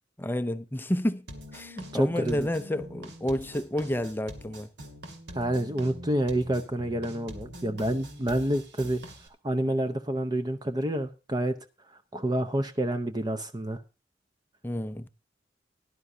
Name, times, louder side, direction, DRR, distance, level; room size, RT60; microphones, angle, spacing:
voice 1, 0.2-1.3 1.5-4.7 14.6-15.1, left 1 dB, 10° left, 0.6 m, -30 dB
sound 1, 1.3-9.3, equal, 75° right, 2.5 m, -44 dB
voice 2, 1.9-2.5 5.3-9.0 9.4-11.6 12.1-13.8, right 1 dB, 25° right, 0.8 m, -28 dB
17.5 x 11.5 x 2.7 m
head